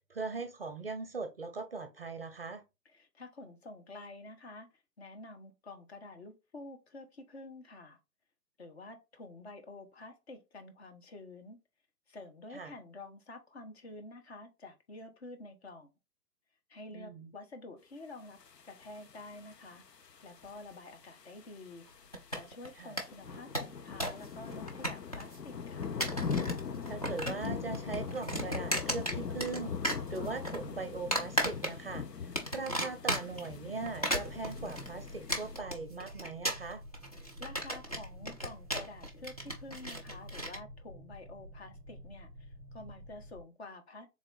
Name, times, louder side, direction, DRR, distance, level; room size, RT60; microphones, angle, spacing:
voice 1, 0.1-2.6 12.5-12.7 16.9-17.3 22.8-23.0 26.8-36.8, right 4 dB, 40° right, 0.5 m, -40 dB
voice 2, 2.8-4.7 5.0-8.0 8.6-11.6 12.1-15.9 16.7-18.4 18.6-19.8 20.2-21.9 22.3-25.9 37.2-44.1, left 2 dB, 40° left, 1.0 m, -49 dB
sound 1, 18.4-35.6, left 6 dB, 80° left, 0.8 m, -41 dB
sound 2, 22.1-22.7 23.0-23.1 23.3-24.3 24.5-25.4 25.8-26.6 26.9-27.5 27.7-29.6 29.8-30.6 31.1-32.0 32.3-33.5 33.9-40.6, right 1 dB, 25° left, 0.4 m, -34 dB
sound 3, 34.2-43.4, equal, 10° right, 1.0 m, -50 dB
3.6 x 3.4 x 3.9 m
figure-of-eight pair, 145°, 49 cm